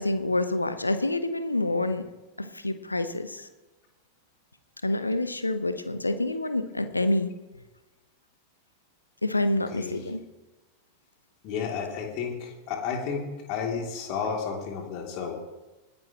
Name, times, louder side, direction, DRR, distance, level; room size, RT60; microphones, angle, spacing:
voice 1, 0.0-2.1 2.4-3.5 4.8-7.3 9.2-10.2, left 2 dB, 85° left, 11 dB, 0.9 m, -27 dB
voice 2, 11.4-15.4, left 6 dB, 45° left, 1 dB, 2.8 m, -32 dB
20.0 x 11.0 x 3.0 m, 1.1 s
figure-of-eight pair, 90°, 0 cm